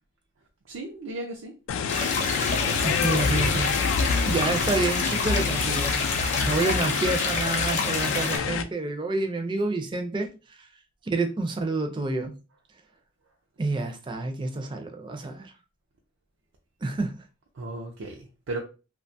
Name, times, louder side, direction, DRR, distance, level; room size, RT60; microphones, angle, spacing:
voice 1, 0.7-1.5 6.5-6.8 17.6-18.6, right 2 dB, 90° right, 0.5 m, -34 dB
sound 1, 1.7-8.6, left 5 dB, 85° left, 0.3 m, -27 dB
sound 2, 1.9-8.4, left 3 dB, 35° left, 0.6 m, -29 dB
voice 2, 2.8-6.0 6.4-10.3 10.6-10.7 11.0-12.3 13.6-15.5 16.8-17.2, right 3 dB, 25° right, 0.4 m, -28 dB
2.8 x 2.2 x 2.6 m
head